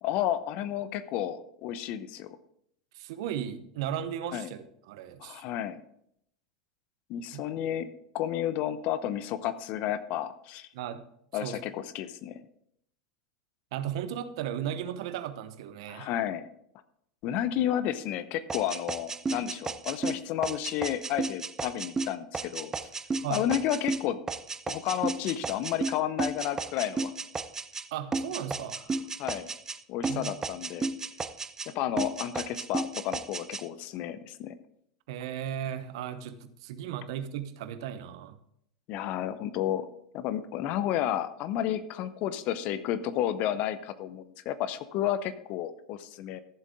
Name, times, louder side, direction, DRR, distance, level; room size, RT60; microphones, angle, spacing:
voice 1, 0.0-2.4 4.3-4.5 5.2-5.8 7.1-7.9 8.1-10.7 11.3-12.4 15.9-16.5 17.2-22.7 23.3-24.2 24.7-27.1 29.2-29.5 29.9-30.9 31.7-34.6 38.9-39.9 40.1-46.4, left 11 dB, 50° left, 13 dB, 0.8 m, -31 dB
voice 2, 2.9-5.4 7.3-7.4 10.7-11.0 11.4-11.6 13.7-16.1 23.2-23.5 27.9-28.8 30.1-30.3 35.1-38.4, right 10 dB, 65° right, 12 dB, 0.9 m, -36 dB
sound 1, 18.5-27.9 28.1-29.8 30.0-31.7 32.0-33.6, right 4 dB, 20° right, 0.6 m, -33 dB
14.0 x 7.4 x 3.6 m, 0.72 s
hypercardioid pair, 90°, 3 cm